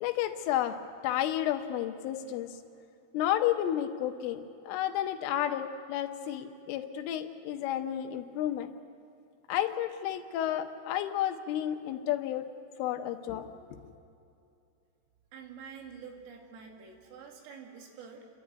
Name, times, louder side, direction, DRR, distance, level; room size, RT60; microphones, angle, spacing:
voice 1, 0.0-2.6 3.1-8.7 9.5-12.5 12.8-13.9, left 11 dB, 80° left, 7 dB, 3.3 m, -32 dB
voice 2, 15.3-18.3, right 6 dB, 75° right, 1 dB, 4.8 m, -47 dB
29.5 x 12.0 x 9.3 m, 2.6 s
omnidirectional pair, 6.0 m